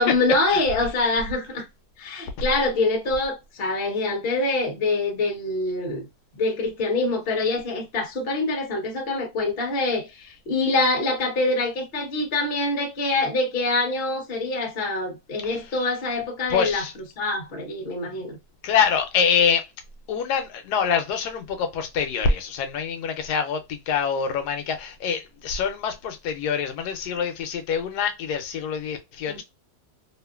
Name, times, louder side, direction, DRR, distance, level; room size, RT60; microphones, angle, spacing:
voice 1, 0.0-1.6 2.0-6.0 6.3-16.8 17.2-18.4 29.3-29.4, left 2 dB, 45° left, 0.9 m, -25 dB
voice 2, 15.4-15.7 16.5-16.9 18.6-19.7 20.1-29.4, left 6 dB, 90° left, 1.2 m, -25 dB
2.8 x 2.4 x 2.2 m
omnidirectional pair, 1.7 m